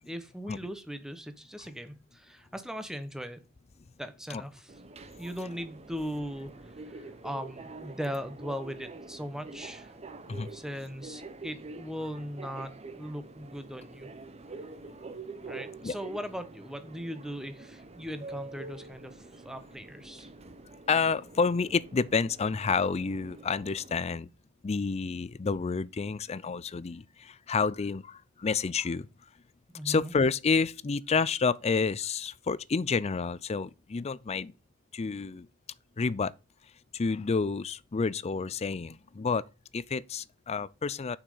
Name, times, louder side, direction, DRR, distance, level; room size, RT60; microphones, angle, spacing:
voice 1, 0.1-3.4 4.0-4.7 5.2-6.5 6.9-9.9 10.5-14.1 15.4-20.3 29.7-30.1, equal, 5° right, 1.1 m, -39 dB
Subway metro underground, 4.7-24.1, right 3 dB, 30° right, 0.8 m, -46 dB
voice 2, 20.9-24.3 24.6-29.1 29.8-34.5 34.9-35.5 36.0-36.3 36.9-39.5 39.7-41.2, left 5 dB, 30° left, 0.4 m, -29 dB
7.0 x 5.9 x 6.7 m
head